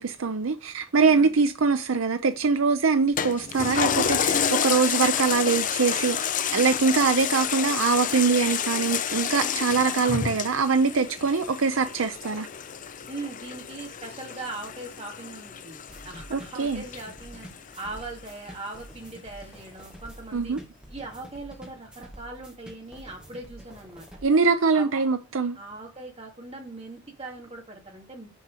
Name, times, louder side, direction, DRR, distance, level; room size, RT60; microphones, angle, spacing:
voice 1, 0.0-12.5 16.3-16.8 20.3-20.6 24.2-25.6, right 4 dB, 65° right, 0.6 m, -23 dB
voice 2, 1.0-1.4 9.4-10.0 13.1-17.5 17.8-20.6 20.9-24.1 24.7-24.9 25.6-28.3, right 2 dB, 30° right, 2.3 m, -40 dB
Toilet flush, 3.2-18.0 18.5-18.6, left 8 dB, 40° left, 0.5 m, -29 dB
sound 1, 15.9-24.2, right 1 dB, 5° right, 2.1 m, -47 dB
7.3 x 4.3 x 6.6 m
head